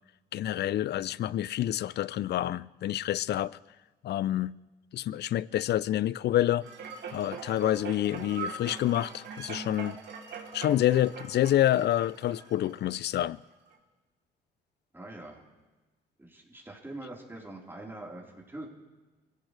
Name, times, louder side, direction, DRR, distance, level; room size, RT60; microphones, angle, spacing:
voice 1, 0.3-3.6 4.0-4.5 4.9-6.7 7.1-10.0 10.5-13.4, left 12 dB, 60° left, 0.5 m, -28 dB
sound 1, 6.6-13.2 13.7-13.8, right 5 dB, 65° right, 3.5 m, -42 dB
voice 2, 14.9-15.4 16.2-18.7, right 2 dB, 10° right, 4.2 m, -43 dB
23.5 x 16.5 x 3.4 m
supercardioid pair, 70°, 19 cm